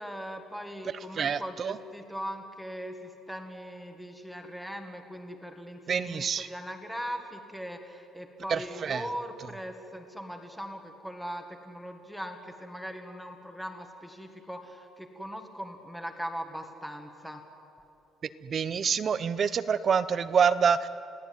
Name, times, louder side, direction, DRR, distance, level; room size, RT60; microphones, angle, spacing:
voice 1, 0.0-17.4, equal, ahead, 4 dB, 1.7 m, -40 dB
voice 2, 1.2-1.8 5.9-6.5 8.5-9.0 18.4-20.9, right 6 dB, 30° right, 14 dB, 0.6 m, -26 dB
29.5 x 17.5 x 9.5 m, 2.7 s
cardioid pair, 175°, 0 cm